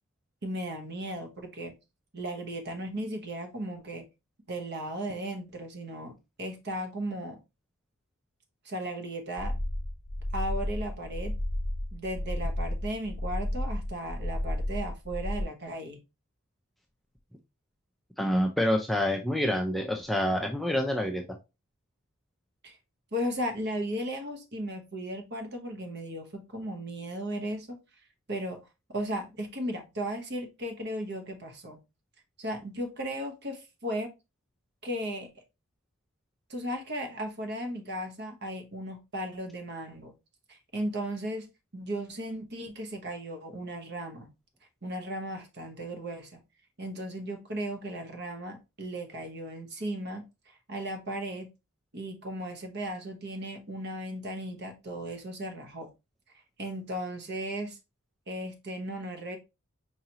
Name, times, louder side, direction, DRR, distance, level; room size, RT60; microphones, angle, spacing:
voice 1, 0.4-1.7 2.1-4.1 4.5-7.4 8.6-9.5 10.3-11.3 11.9-16.0 22.6-22.8 23.1-27.8 28.3-28.6 28.9-31.8 32.4-34.1 34.8-35.3 36.5-40.1 40.5-41.5 41.7-44.3 44.8-46.4 46.8-51.5 51.9-55.9 56.3-57.8 58.3-59.4, right 1 dB, 50° right, 0.9 m, -36 dB
sound 1, 9.4-15.4, left 1 dB, 40° left, 0.8 m, -32 dB
voice 2, 18.2-21.2, left 1 dB, ahead, 0.3 m, -27 dB
4.7 x 2.9 x 2.8 m
head